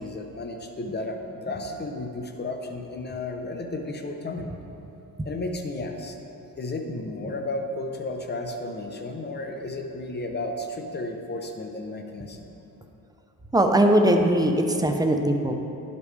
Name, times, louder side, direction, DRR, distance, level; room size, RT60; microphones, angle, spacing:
voice 1, 0.0-4.5 5.2-6.2 6.6-12.5, left 2 dB, 30° left, 4 dB, 0.8 m, -33 dB
voice 2, 13.5-15.5, right 1 dB, 10° right, 4 dB, 0.6 m, -20 dB
11.0 x 5.2 x 3.3 m, 2.8 s
cardioid pair, 95°, 36 cm